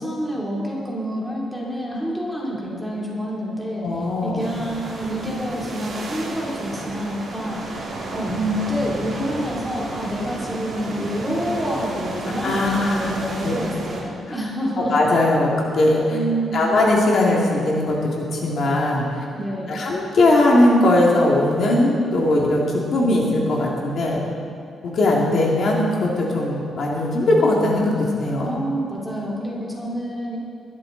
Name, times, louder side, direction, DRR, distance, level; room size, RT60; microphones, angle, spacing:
voice 1, 0.0-7.6 8.1-15.0 16.1-16.7 19.3-19.9 28.4-30.4, equal, 5° left, -5 dB, 3.0 m, -27 dB
voice 2, 3.8-4.5 12.4-13.2 13.4-13.5 14.8-15.5 15.7-16.0 16.5-19.1 19.7-22.6 22.9-24.2 24.8-28.5, left 1 dB, 50° left, -3 dB, 2.2 m, -19 dB
sound 1, 4.4-14.0, right 2 dB, 45° right, 2.9 m, -32 dB
21.5 x 13.0 x 3.9 m, 2.7 s
cardioid pair, 170°, 0 cm